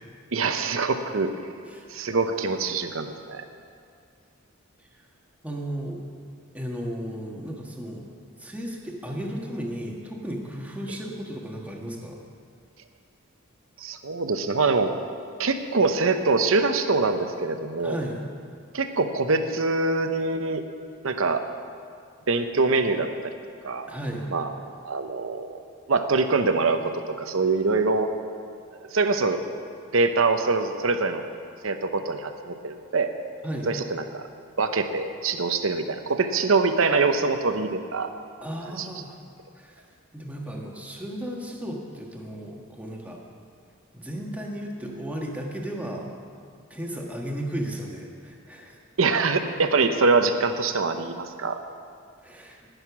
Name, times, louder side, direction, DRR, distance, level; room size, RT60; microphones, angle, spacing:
voice 1, 0.3-1.3 1.9-3.4 13.8-14.9 15.4-18.0 18.7-20.6 21.0-21.4 22.3-23.3 23.6-23.9 24.3-24.5 24.8-25.6 25.9-28.1 28.9-29.4 29.9-31.2 31.6-33.1 33.7-34.2 34.6-38.1 38.7-38.9 49.0-51.6, right 3 dB, 75° right, 8 dB, 0.8 m, -24 dB
voice 2, 5.4-6.0 6.5-8.0 8.4-12.2 17.8-18.2 23.9-24.3 33.4-33.7 38.4-39.2 39.5-39.8 40.1-43.2 43.9-46.1 46.7-48.8 52.2-52.7, equal, 5° right, -1 dB, 1.3 m, -34 dB
18.0 x 6.6 x 6.0 m, 2.3 s
head